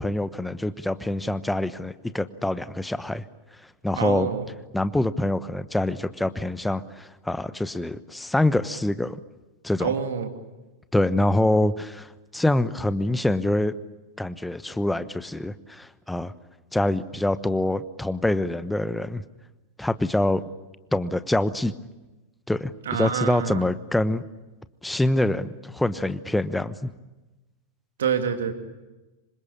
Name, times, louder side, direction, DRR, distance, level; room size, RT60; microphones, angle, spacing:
voice 1, 0.0-3.2 3.8-4.3 4.7-9.2 9.6-9.9 10.9-13.7 14.2-16.3 16.7-19.2 19.8-20.4 20.9-21.7 22.5-22.7 23.0-24.2 24.8-26.9, left 1 dB, 5° left, 14 dB, 1.1 m, -25 dB
voice 2, 4.0-4.5 9.8-10.3 22.9-23.6 28.0-28.5, right 7 dB, 65° right, 7 dB, 2.5 m, -26 dB
27.0 x 25.5 x 8.7 m, 1.1 s
figure-of-eight pair, 90°, 0 cm